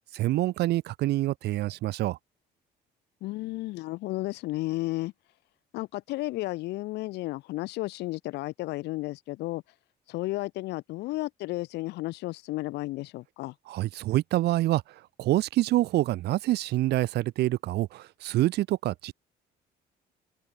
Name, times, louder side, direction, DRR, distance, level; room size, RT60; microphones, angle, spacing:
voice 1, 0.1-2.2 13.7-14.8 15.2-19.1, right 16 dB, 75° right, 2.6 m, -26 dB
voice 2, 3.2-5.1 5.7-9.6 10.1-13.5, left 19 dB, 85° left, 3.1 m, -33 dB
open air
cardioid pair, 110°, 17 cm